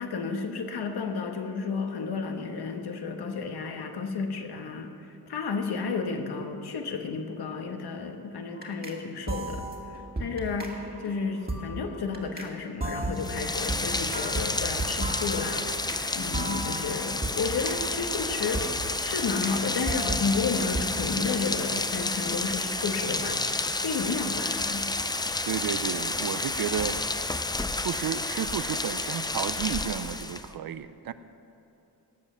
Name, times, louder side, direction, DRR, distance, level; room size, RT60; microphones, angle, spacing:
voice 1, 0.0-9.6 9.9-15.7 16.1-23.4 23.7-24.9, left 4 dB, 70° left, 5 dB, 1.5 m, -32 dB
sound 1, 8.6-9.0 9.3-12.5 12.8-16.1 16.3-19.6 19.9-21.0, right 2 dB, 25° right, 2.0 m, -35 dB
Rain, 13.1-30.5, left 2 dB, 10° left, 0.5 m, -30 dB
voice 2, 25.5-27.0 27.8-31.1, right 9 dB, 60° right, 13 dB, 0.6 m, -32 dB
18.5 x 7.3 x 6.8 m, 2.9 s
cardioid pair, 105°, 40 cm